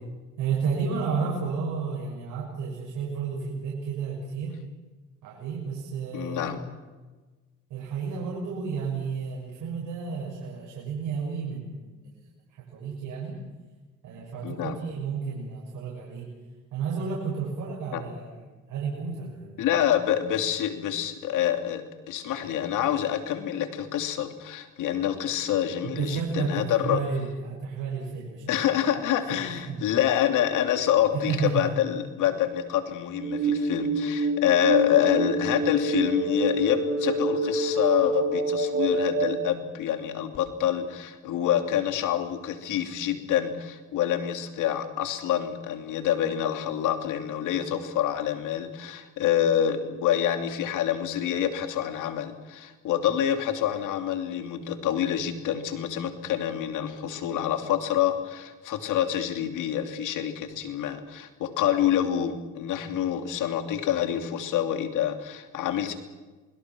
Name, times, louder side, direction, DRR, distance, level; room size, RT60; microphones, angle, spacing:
voice 1, 0.4-4.6 5.2-6.6 7.7-11.9 12.5-13.4 14.0-16.3 16.7-19.6 25.8-28.8 29.3-29.8 31.1-31.7, right 5 dB, 80° right, -3 dB, 6.6 m, -32 dB
voice 2, 6.1-6.6 14.4-14.8 17.9-18.0 19.6-27.0 28.5-65.9, left 10 dB, 85° left, 7 dB, 2.8 m, -27 dB
sound 1, 33.2-39.4, right 2 dB, 45° right, 3.8 m, -27 dB
27.5 x 22.0 x 6.1 m, 1.3 s
cardioid pair, 90°, 30 cm